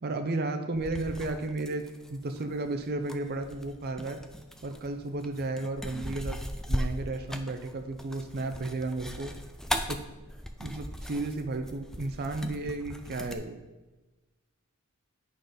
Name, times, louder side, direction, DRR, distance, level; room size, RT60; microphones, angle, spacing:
voice 1, 0.0-4.2 4.6-6.4 6.7-9.3 9.9-10.0 10.6-13.6, right 2 dB, 45° right, 6 dB, 0.6 m, -33 dB
sound 1, 0.7-13.4, equal, ahead, 0.3 m, -38 dB
8.8 x 3.9 x 5.1 m, 1.1 s
head